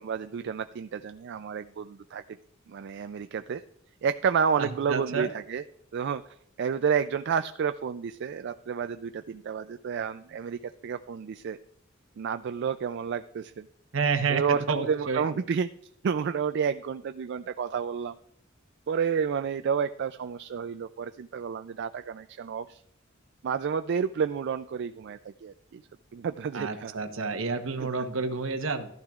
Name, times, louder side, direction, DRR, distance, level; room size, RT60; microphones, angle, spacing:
voice 1, 0.0-2.2 2.7-3.6 4.0-5.6 5.9-6.2 6.6-11.6 12.2-13.7 14.3-15.7 16.0-18.2 18.9-22.8 23.4-25.8 26.1-26.9 28.0-28.1, right 6 dB, 60° right, 10 dB, 0.3 m, -30 dB
voice 2, 4.6-5.3 13.9-15.2 26.5-28.9, right 4 dB, 75° right, 7 dB, 1.0 m, -29 dB
14.5 x 12.0 x 2.4 m, 0.71 s
head